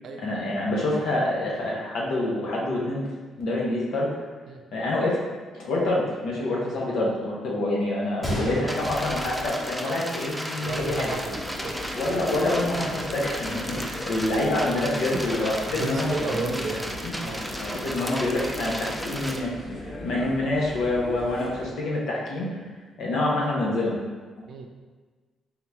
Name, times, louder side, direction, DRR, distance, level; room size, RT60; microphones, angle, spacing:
voice 1, 0.2-3.1 3.4-4.1 4.7-5.2 5.5-11.1 11.9-16.6 17.0-19.5 20.0-22.5 23.0-23.9, left 2 dB, 80° left, -4 dB, 1.0 m, -27 dB
Gunshot gunfire, 8.2-10.2 10.5-10.6 11.3-11.5, equal, 15° left, 1.3 m, -33 dB
sound 1, 8.7-19.4, equal, ahead, 0.4 m, -35 dB
voice 2, 9.8-10.2 10.6-11.8 15.1-15.2 15.8-17.4 24.5-24.7, right 4 dB, 60° right, 3 dB, 0.5 m, -34 dB
sound 2, 10.6-21.7, left 1 dB, 40° left, 0.7 m, -38 dB
3.7 x 2.9 x 3.5 m, 1.4 s
cardioid pair, 90°, 0 cm